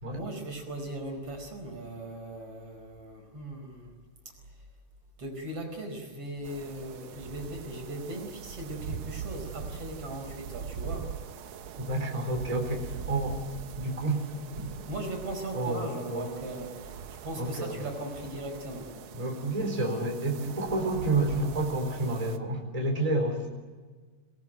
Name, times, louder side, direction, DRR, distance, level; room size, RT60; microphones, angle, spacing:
voice 1, 0.1-3.9 5.2-11.1 14.9-17.0 17.2-18.9, right 1 dB, 45° right, 3 dB, 5.9 m, -38 dB
sound 1, 6.4-22.4, right 7 dB, 75° right, 1.2 m, -42 dB
voice 2, 11.8-13.4 13.8-14.2 14.6-14.7 15.5-16.3 17.4-17.8 19.1-23.5, right 2 dB, 10° right, 1 dB, 4.2 m, -30 dB
27.0 x 20.0 x 9.2 m, 1.4 s
omnidirectional pair, 3.8 m